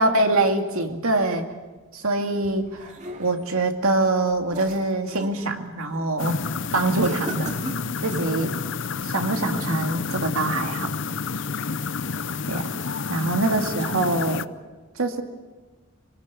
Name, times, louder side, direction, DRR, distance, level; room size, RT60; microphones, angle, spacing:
voice 1, 0.0-1.5 1.9-6.4 6.7-7.5 8.0-8.5 9.0-10.9 12.5-12.7 13.1-14.5 15.0-15.2, right 2 dB, 85° right, 5 dB, 2.4 m, -24 dB
sound 1, 2.4-3.6 4.1-5.4 5.8-6.1 7.0-8.4, right 2 dB, 35° right, 2.3 m, -37 dB
sound 2, 6.2-14.5, left 5 dB, 60° left, 0.7 m, -29 dB
25.5 x 19.5 x 8.5 m, 1.2 s
head